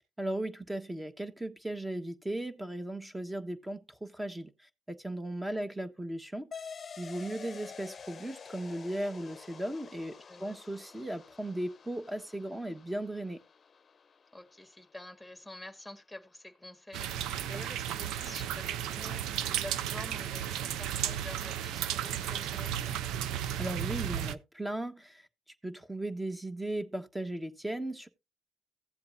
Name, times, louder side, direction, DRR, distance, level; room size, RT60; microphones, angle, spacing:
voice 1, 0.2-4.5 4.9-6.5 7.0-13.4 23.3-25.3 25.6-28.1, right 1 dB, 15° right, 1.4 m, -37 dB
sound 1, 6.5-15.5, left 6 dB, 50° left, 0.7 m, -49 dB
voice 2, 14.3-23.0, left 1 dB, ahead, 1.8 m, -48 dB
sound 2, 16.9-24.3, right 10 dB, 90° right, 0.5 m, -34 dB
15.5 x 7.7 x 2.7 m
supercardioid pair, 60°, 0 cm